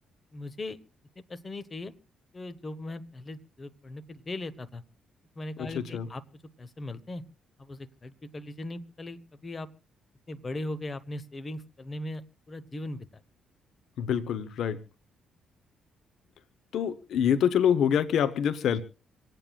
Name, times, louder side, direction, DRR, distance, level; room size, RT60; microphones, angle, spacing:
voice 1, 0.3-0.8 1.2-1.9 2.3-4.8 5.4-7.2 7.6-9.7 10.3-13.2, left 2 dB, 30° left, 12 dB, 1.1 m, -39 dB
voice 2, 14.0-14.8 16.7-18.8, left 8 dB, 70° left, 11 dB, 0.9 m, -25 dB
26.5 x 9.1 x 2.4 m, 0.37 s
cardioid pair, 90°, 0 cm